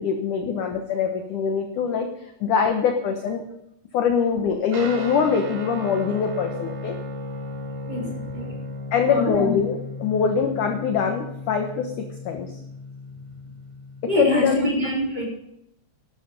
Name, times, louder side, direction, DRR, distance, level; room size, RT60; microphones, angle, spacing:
voice 1, 0.0-2.1 2.4-3.4 3.9-7.0 8.9-12.6 14.2-14.6, left 6 dB, 65° left, 4 dB, 2.1 m, -23 dB
Guitar, 4.7-14.5, left 2 dB, 90° right, 4.8 m, -36 dB
voice 2, 7.8-8.6 9.1-9.5 14.1-15.2, right 1 dB, 25° right, -2 dB, 4.9 m, -26 dB
13.0 x 12.5 x 5.3 m, 0.79 s
omnidirectional pair, 4.9 m